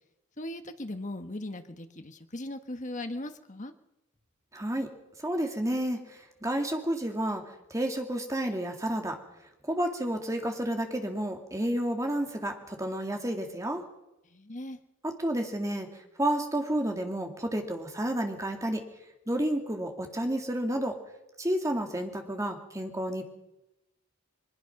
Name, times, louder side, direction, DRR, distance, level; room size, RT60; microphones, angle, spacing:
voice 1, 0.4-3.7 14.3-14.8, left 1 dB, 35° left, 8 dB, 1.4 m, -38 dB
voice 2, 4.5-4.9 5.2-7.4 7.7-9.2 9.6-13.8 15.0-18.8 19.3-21.0 21.4-23.2, right 1 dB, 15° right, 4 dB, 2.4 m, -31 dB
22.5 x 20.5 x 6.0 m, 0.95 s
head